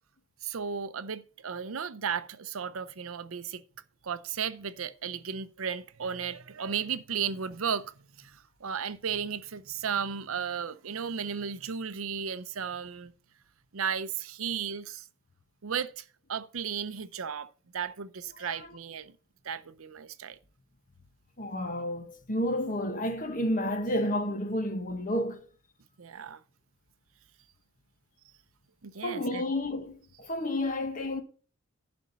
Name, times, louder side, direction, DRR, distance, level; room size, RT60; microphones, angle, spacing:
voice 1, 0.4-3.6 4.0-13.1 13.7-15.0 15.6-19.1 19.4-20.4 26.0-26.4 28.8-29.4, right 7 dB, 80° right, 0.6 m, -35 dB
voice 2, 21.4-25.4 29.0-31.2, left 1 dB, 40° left, 1.4 m, -31 dB
11.5 x 4.3 x 6.9 m
head